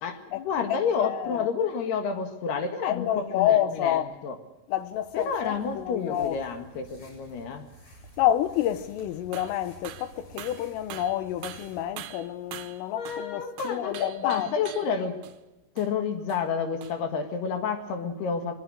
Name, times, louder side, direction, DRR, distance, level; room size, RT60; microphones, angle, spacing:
voice 1, 0.0-4.4 5.1-7.7 13.0-15.2 15.8-18.6, left 6 dB, 60° left, 3.4 m, -30 dB
voice 2, 1.0-1.5 2.8-4.1 4.7-6.4 8.2-14.5, left 12 dB, 90° left, 3.7 m, -28 dB
sound 1, 4.9-11.8, right 1 dB, 35° left, 8.8 m, -52 dB
sound 2, 9.3-9.6 9.8-10.1 10.4-13.3 13.6-15.0 15.2-15.4 15.8-15.9 16.3-16.5 16.8-17.0, right 13 dB, 75° right, 2.8 m, -43 dB
24.0 x 21.0 x 6.5 m
omnidirectional pair, 5.7 m